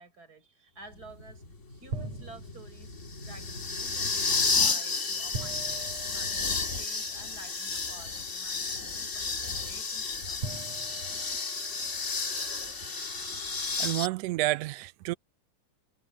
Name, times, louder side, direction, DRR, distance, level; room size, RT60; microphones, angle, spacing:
voice 1, 0.0-1.4 1.7-2.9 3.2-5.7 6.1-10.5, right 2 dB, 25° right, 5.6 m, -52 dB
sound 1, 0.9-14.1, left 4 dB, 30° left, 1.6 m, -32 dB
sound 2, 1.9-2.9 5.3-7.0 8.2-8.3 10.4-12.1, right 3 dB, 55° right, 7.0 m, -41 dB
voice 2, 13.8-15.1, right 17 dB, 90° right, 1.4 m, -29 dB
omnidirectional pair, 3.7 m